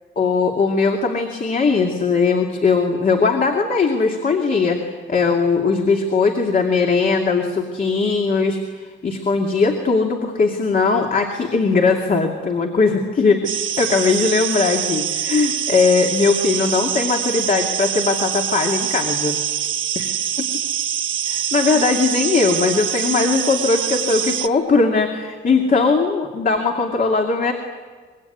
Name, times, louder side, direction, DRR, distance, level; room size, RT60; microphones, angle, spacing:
voice 1, 0.2-13.4 13.8-19.4 21.3-27.5, left 4 dB, 45° left, 2 dB, 2.5 m, -19 dB
sound 1, 13.4-24.5, right 9 dB, 75° right, 1.1 m, -24 dB
25.0 x 23.0 x 9.7 m, 1.5 s
wide cardioid pair, 165°, 20 cm